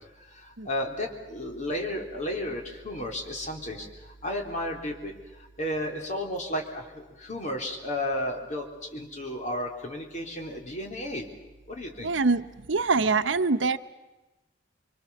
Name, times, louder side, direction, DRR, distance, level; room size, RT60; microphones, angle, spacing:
voice 1, 0.7-3.9 4.2-5.1 5.6-11.3 11.7-12.1, left 1 dB, 40° left, 1 dB, 3.6 m, -33 dB
voice 2, 12.0-13.8, right 4 dB, 80° right, 10 dB, 0.9 m, -24 dB
26.0 x 23.5 x 7.1 m, 1.1 s
head